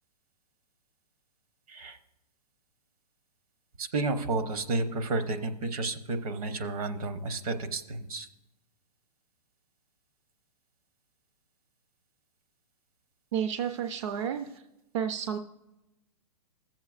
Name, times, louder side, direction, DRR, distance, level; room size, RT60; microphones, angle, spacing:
voice 1, 3.8-8.3, right 3 dB, 65° right, 9 dB, 0.9 m, -31 dB
voice 2, 13.3-14.5 14.9-15.4, right 8 dB, 50° right, 8 dB, 0.4 m, -31 dB
20.0 x 7.4 x 2.4 m, 0.96 s
hypercardioid pair, 160°, 20 cm